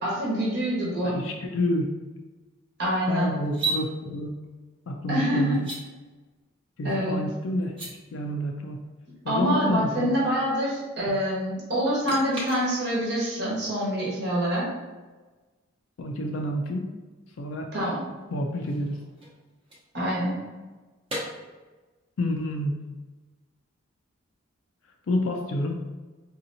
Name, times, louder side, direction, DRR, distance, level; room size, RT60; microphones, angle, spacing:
voice 1, 0.0-1.2 2.8-3.3 5.1-5.5 6.8-7.2 9.3-14.7 17.7-18.0 19.9-20.3, equal, 55° right, -6 dB, 1.1 m, -26 dB
voice 2, 1.0-1.9 3.1-4.3 4.9-5.6 6.8-7.7 8.1-8.8 9.3-10.1 11.1-11.2 16.0-16.9 17.4-17.7 18.3-18.9 22.2-22.8 25.1-25.8, left 1 dB, 75° left, 2 dB, 0.4 m, -28 dB
sound 1, 3.4-3.8 5.5-5.8 7.6-7.9 12.0-13.1 16.3-16.4 18.3-20.5 21.1-21.2, right 2 dB, 25° right, 0.8 m, -34 dB
4.1 x 2.8 x 2.6 m, 1.3 s
head